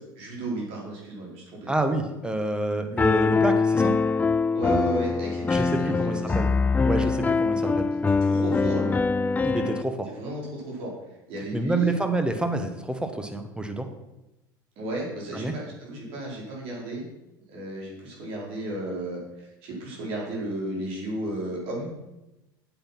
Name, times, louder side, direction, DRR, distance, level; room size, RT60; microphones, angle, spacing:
voice 1, 0.1-1.7 4.5-6.3 8.2-9.0 10.1-10.9 11.3-11.9 14.8-17.0 17.5-21.9, right 1 dB, 55° right, -3 dB, 4.6 m, -33 dB
voice 2, 1.7-3.9 5.5-6.5 6.8-7.9 9.4-10.1 11.5-13.9 15.3-15.5, right 2 dB, 10° right, 7 dB, 1.5 m, -28 dB
Piano, 3.0-9.8, left 4 dB, 15° left, 0.3 m, -23 dB
8.6 x 8.2 x 5.9 m, 0.96 s
hypercardioid pair, 75°, 11 cm